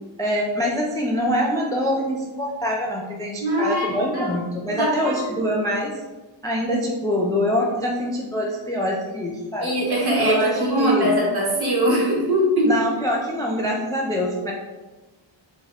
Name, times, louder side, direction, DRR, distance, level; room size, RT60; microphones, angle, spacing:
voice 1, 0.2-6.0 6.4-9.7 10.2-11.2 12.7-14.5, equal, 10° left, -2 dB, 0.3 m, -24 dB
voice 2, 3.4-4.3 4.8-5.5 9.6-12.7, equal, 50° right, -4 dB, 1.4 m, -22 dB
4.4 x 2.3 x 3.5 m, 1.2 s
wide cardioid pair, 150°, 47 cm